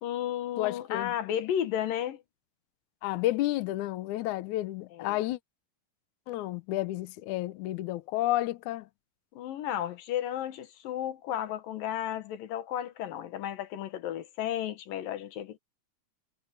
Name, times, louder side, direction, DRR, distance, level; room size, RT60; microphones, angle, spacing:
voice 1, 0.0-2.2 4.9-5.2 9.3-15.6, left 10 dB, 90° left, 3.1 m, -33 dB
voice 2, 0.6-1.1 3.0-5.4 6.3-8.9, left 16 dB, 75° left, 2.0 m, -31 dB
omnidirectional pair, 3.9 m